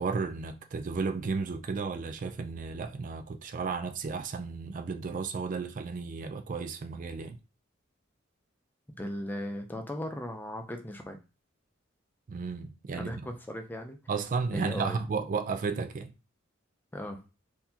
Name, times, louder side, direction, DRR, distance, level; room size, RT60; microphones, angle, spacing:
voice 1, 0.0-7.4 12.3-13.3 14.1-16.1, right 4 dB, 45° right, 0.4 m, -33 dB
voice 2, 9.0-11.2 12.9-14.0 14.5-15.0 16.9-17.2, left 1 dB, 10° left, 0.6 m, -37 dB
4.1 x 2.7 x 2.8 m
head